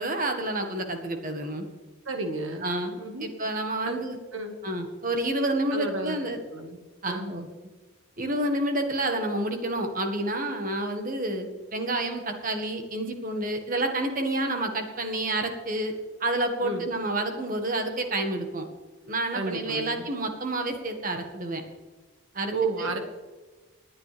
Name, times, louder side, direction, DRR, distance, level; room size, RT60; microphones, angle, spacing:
voice 1, 0.0-1.6 2.6-2.9 3.2-4.2 4.6-6.4 7.0-7.5 8.2-15.9 16.2-18.7 19.1-21.6 22.3-22.5 22.8-22.9, right 1 dB, 40° right, 5 dB, 1.6 m, -29 dB
voice 2, 2.1-2.6 3.0-3.3 3.8-4.0 4.3-4.6 5.7-6.2 6.5-6.8 7.1-7.3 16.6-16.9 19.3-20.1 22.5-23.0, right 3 dB, 75° right, 4 dB, 1.8 m, -31 dB
20.0 x 9.4 x 3.4 m, 1.3 s
head